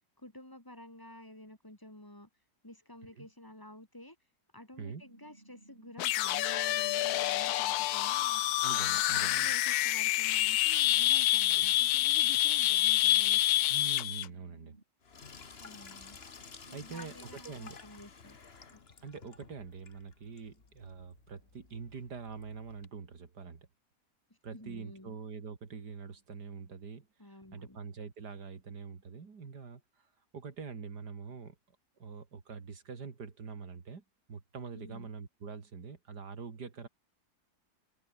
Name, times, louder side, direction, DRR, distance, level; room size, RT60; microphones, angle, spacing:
voice 1, 0.2-2.3 2.6-4.2 4.5-8.4 8.8-13.4 15.6-16.2 16.6-18.4 18.7-18.8 24.5-25.1 27.2-27.8 34.7-35.1, left 1 dB, 10° left, 3.2 m, -51 dB
sound 1, 4.8-14.8, right 2 dB, 35° right, 4.2 m, -59 dB
sound 2, 6.0-14.3, left 14 dB, 75° left, 1.1 m, -27 dB
voice 2, 8.6-9.5 11.5-11.7 13.7-14.8 16.7-17.8 19.0-23.7 24.4-31.6 32.0-34.0 34.3-36.9, right 5 dB, 80° right, 3.0 m, -45 dB
Sink (filling or washing), 15.0-22.9, left 5 dB, 40° left, 1.8 m, -53 dB
open air
omnidirectional pair, 1.7 m